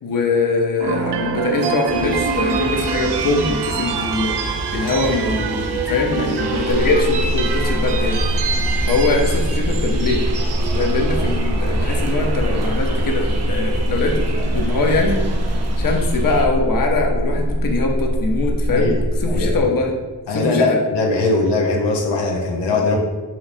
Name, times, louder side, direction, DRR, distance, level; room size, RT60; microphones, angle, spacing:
voice 1, 0.0-8.2 8.9-10.2 10.7-19.9 20.3-20.8, left 3 dB, 55° left, 2 dB, 0.8 m, -22 dB
sound 1, 0.8-17.0, right 5 dB, 75° right, 0.7 m, -27 dB
sound 2, 1.9-16.5, right 2 dB, 40° right, 0.8 m, -29 dB
sound 3, 6.7-19.6, equal, ahead, 0.4 m, -22 dB
voice 2, 20.3-23.0, left 3 dB, 85° left, 0 dB, 0.8 m, -20 dB
5.9 x 3.2 x 2.6 m, 1.3 s
cardioid pair, 55°, 41 cm